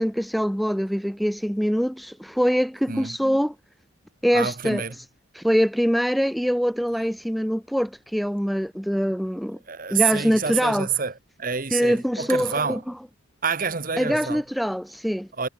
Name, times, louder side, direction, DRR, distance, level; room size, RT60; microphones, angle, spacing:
voice 1, 0.0-3.5 4.2-4.8 5.4-9.6 9.9-10.9 11.7-12.8 14.0-15.3, equal, ahead, 0.3 m, -23 dB
voice 2, 4.3-5.0 9.7-11.1 11.4-12.8 13.4-14.4 15.3-15.5, right 6 dB, 45° right, 1.6 m, -27 dB
head